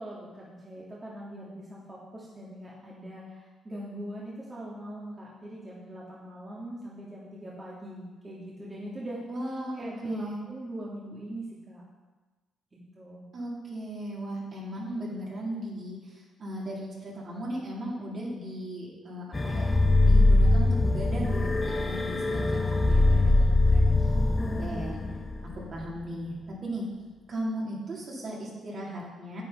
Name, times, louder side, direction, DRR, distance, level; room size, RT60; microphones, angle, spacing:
voice 1, 0.0-9.2 9.8-11.8 12.7-13.3 24.1-25.0, right 1 dB, 25° right, -6 dB, 2.1 m, -41 dB
voice 2, 9.3-10.4 13.3-19.7 20.0-24.1 24.6-25.0 25.5-26.9 27.3-29.4, right 1 dB, 50° right, -5 dB, 3.6 m, -37 dB
sound 1, 19.3-26.0, left 2 dB, 25° left, 1.0 m, -23 dB
9.8 x 8.5 x 4.3 m, 1.3 s
cardioid pair, 90°, 0 cm